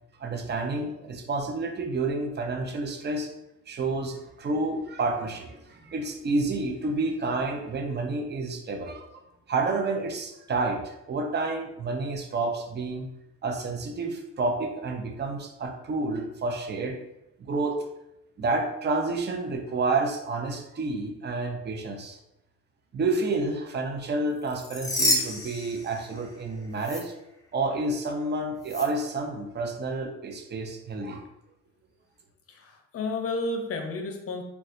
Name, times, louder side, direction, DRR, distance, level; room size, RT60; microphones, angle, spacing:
voice 1, 0.2-3.3 3.7-9.1 9.5-13.1 13.4-17.0 17.4-17.8 18.4-22.2 22.9-27.1 27.5-31.2, right 3 dB, 35° right, 3 dB, 0.6 m, -29 dB
sound 1, 24.4-26.4 26.8-27.0 28.6-28.9, left 1 dB, 10° left, 0.6 m, -29 dB
voice 2, 32.5-34.4, left 2 dB, 50° left, 3 dB, 0.7 m, -31 dB
4.0 x 2.3 x 2.5 m, 0.86 s
cardioid pair, 90°, 30 cm